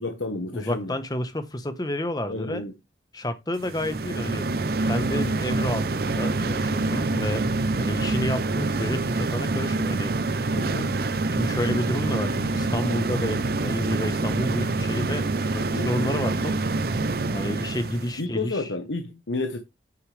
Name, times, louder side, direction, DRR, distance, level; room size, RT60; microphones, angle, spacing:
voice 1, 0.0-1.0 2.3-2.7 10.6-11.0 15.6-15.9 18.2-19.6, left 2 dB, 90° left, 1.1 m, -31 dB
voice 2, 0.5-2.7 3.1-4.5 4.8-7.5 7.8-10.1 10.8-10.9 11.3-16.6 17.3-18.7, left 1 dB, 20° left, 1.0 m, -30 dB
sound 1, 3.6-18.2, right 3 dB, 55° right, 0.6 m, -26 dB
9.1 x 6.5 x 3.3 m
head